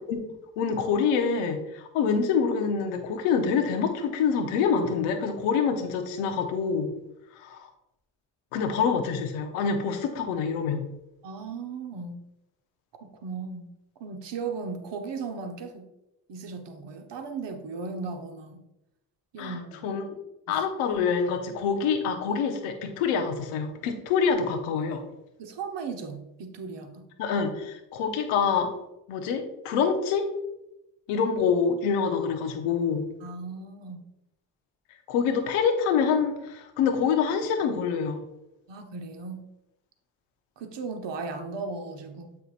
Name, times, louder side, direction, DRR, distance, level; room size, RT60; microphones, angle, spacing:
voice 1, 0.6-6.9 7.3-7.7 8.5-10.8 19.4-20.0 20.5-25.0 27.2-28.7 29.1-30.3 31.1-33.1 35.1-38.2, left 6 dB, 85° left, 5 dB, 0.9 m, -26 dB
voice 2, 11.2-12.3 13.0-13.7 14.0-15.9 16.3-18.6 19.3-19.9 20.5-20.6 25.4-27.0 33.2-34.1 38.7-39.5 40.6-42.4, right 4 dB, 55° right, 5 dB, 1.1 m, -36 dB
7.8 x 5.7 x 2.5 m, 0.89 s
hypercardioid pair, 45°, 49 cm